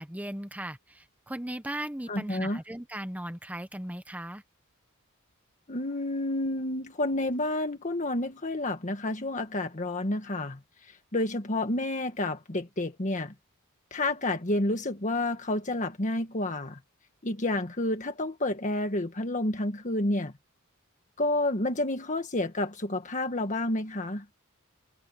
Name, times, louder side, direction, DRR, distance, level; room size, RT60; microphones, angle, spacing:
voice 1, 0.0-4.4, right 1 dB, 5° right, 1.3 m, -37 dB
voice 2, 2.1-2.6 5.7-13.3 13.9-16.8 17.2-20.3 21.2-24.2, left 1 dB, 35° left, 1.5 m, -30 dB
head